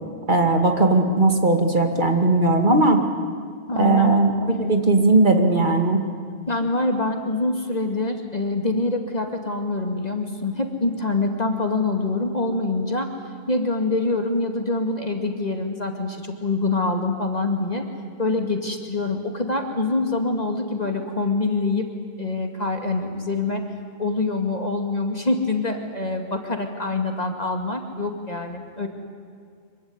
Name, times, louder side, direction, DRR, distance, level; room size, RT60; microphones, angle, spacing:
voice 1, 0.3-3.0 3.8-4.3 4.6-6.0, right 2 dB, 50° right, 4 dB, 2.5 m, -18 dB
voice 2, 3.7-4.1 6.5-13.1 13.5-17.8 18.2-21.9 22.2-23.6 24.0-28.9, left 3 dB, 40° left, 4 dB, 2.4 m, -25 dB
25.0 x 23.5 x 9.8 m, 2.2 s
omnidirectional pair, 1.1 m